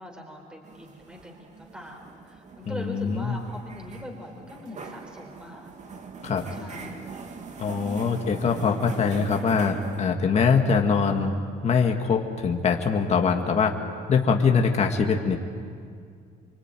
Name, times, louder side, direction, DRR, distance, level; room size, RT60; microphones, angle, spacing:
voice 1, 0.0-5.7 6.5-7.0, left 1 dB, 5° right, 0 dB, 4.3 m, -42 dB
sound 1, 0.6-10.1, right 5 dB, 45° right, 2.6 m, -41 dB
voice 2, 2.7-3.4 6.2-6.4 7.6-11.3 11.6-13.7 14.1-15.4, left 5 dB, 40° left, 2 dB, 2.1 m, -23 dB
26.5 x 24.0 x 9.3 m, 2.2 s
cardioid pair, 110°, 17 cm